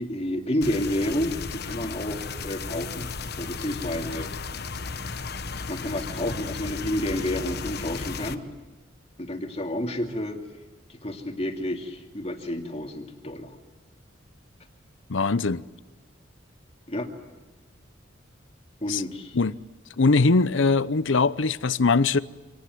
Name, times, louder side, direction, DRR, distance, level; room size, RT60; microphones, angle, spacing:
voice 1, 0.0-3.1 3.4-4.3 5.7-8.5 9.2-10.4 10.9-13.6 16.9-17.1 18.8-19.4, left 1 dB, 30° left, 2.6 m, -30 dB
sound 1, 0.6-8.3, left 4 dB, 55° left, 1.1 m, -34 dB
voice 2, 15.1-15.6 18.9-19.0 19.3-19.6 20.0-22.2, left 3 dB, 70° left, 0.8 m, -21 dB
26.0 x 19.0 x 9.4 m
head